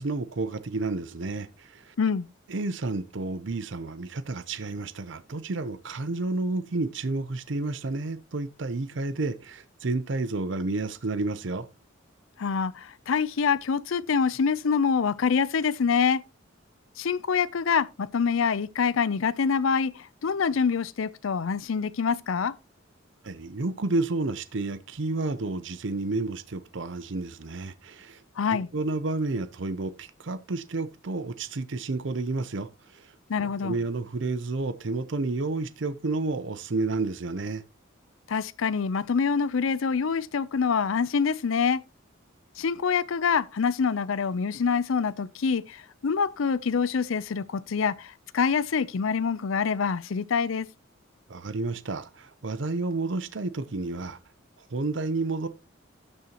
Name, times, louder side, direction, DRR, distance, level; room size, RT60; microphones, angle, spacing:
voice 1, 0.0-2.0 2.5-11.7 23.2-28.2 28.5-33.1 33.4-37.6 51.3-54.2 54.7-55.5, right 3 dB, 60° right, 0.6 m, -31 dB
voice 2, 2.0-2.3 12.4-16.2 17.0-22.5 28.4-28.7 33.3-33.8 38.3-41.8 42.6-50.7, left 6 dB, 75° left, 0.5 m, -26 dB
12.5 x 6.7 x 2.9 m
head